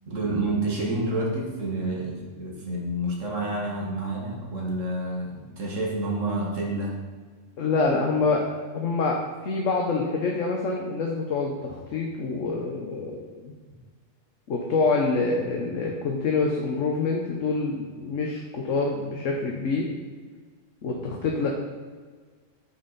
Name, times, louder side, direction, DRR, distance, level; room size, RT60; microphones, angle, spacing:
voice 1, 0.1-7.0, right 2 dB, 80° right, -1 dB, 2.1 m, -29 dB
voice 2, 7.6-13.5 14.5-19.9 20.8-21.5, left 3 dB, 80° left, 0 dB, 1.3 m, -26 dB
9.7 x 5.8 x 4.1 m, 1.5 s
omnidirectional pair, 1.3 m